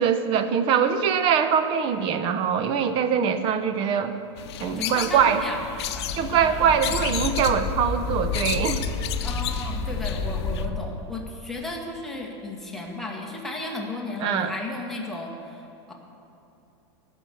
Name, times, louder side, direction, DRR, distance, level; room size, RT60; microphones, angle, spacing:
voice 1, 0.0-4.1 4.6-5.4 6.2-8.9 14.2-14.5, right 7 dB, 35° right, 10 dB, 0.9 m, -23 dB
sound 1, 4.4-10.6, left 11 dB, 65° left, 0.8 m, -34 dB
voice 2, 4.7-7.6 9.2-15.9, left 2 dB, ahead, -2 dB, 1.7 m, -35 dB
sound 2, 5.0-10.8, left 4 dB, 30° left, 3.7 m, -31 dB
18.0 x 6.2 x 7.0 m, 2.9 s
supercardioid pair, 140°, 15 cm